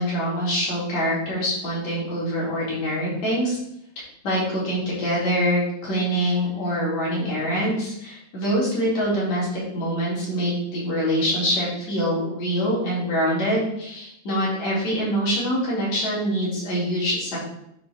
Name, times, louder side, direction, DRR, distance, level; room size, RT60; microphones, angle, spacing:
voice 1, 0.0-3.6 4.2-17.4, equal, 55° left, -7 dB, 5.2 m, -24 dB
12.0 x 5.1 x 4.5 m, 0.77 s
omnidirectional pair, 3.9 m